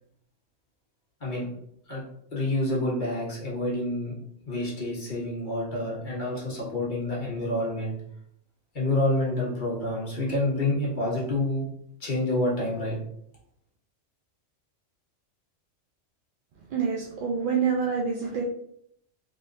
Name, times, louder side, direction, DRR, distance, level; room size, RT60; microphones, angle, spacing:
voice 1, 2.3-4.1 4.5-7.9 8.7-11.7 12.0-13.0, left 1 dB, 40° left, -5 dB, 1.1 m, -28 dB
voice 2, 16.7-18.4, right 6 dB, 60° right, -2 dB, 0.6 m, -27 dB
3.8 x 3.1 x 2.5 m, 0.72 s
omnidirectional pair, 1.3 m